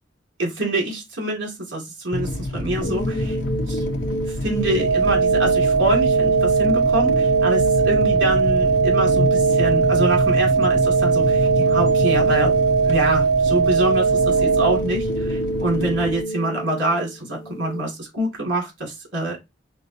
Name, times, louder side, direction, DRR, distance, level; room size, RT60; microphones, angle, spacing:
voice 1, 0.4-3.4 3.7-3.8 4.3-12.5 12.8-19.4, right 1 dB, 80° right, -1 dB, 2.5 m, -26 dB
sound 1, 2.1-16.2, left 1 dB, 80° left, 0.7 m, -28 dB
sound 2, 2.8-17.8, right 1 dB, 50° left, 0.8 m, -29 dB
sound 3, 4.8-14.8, right 5 dB, 50° right, 2.7 m, -19 dB
5.4 x 2.5 x 2.8 m, 0.21 s
head